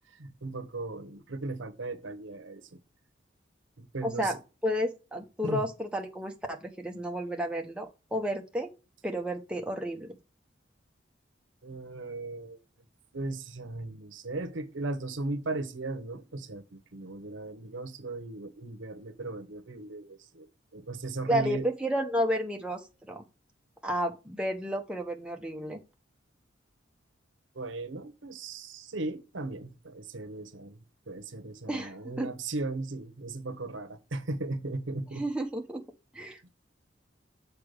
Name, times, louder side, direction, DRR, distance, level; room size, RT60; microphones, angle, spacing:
voice 1, 0.1-2.8 3.8-4.3 5.4-5.6 11.6-12.6 13.1-20.5 20.7-21.6 27.5-30.8 31.1-35.2, right 2 dB, 80° right, 1.0 m, -37 dB
voice 2, 4.0-8.7 9.0-10.2 21.3-23.2 23.8-25.8 31.7-32.3 35.1-35.9 36.1-36.5, equal, 5° right, 0.8 m, -32 dB
6.8 x 4.8 x 4.8 m
head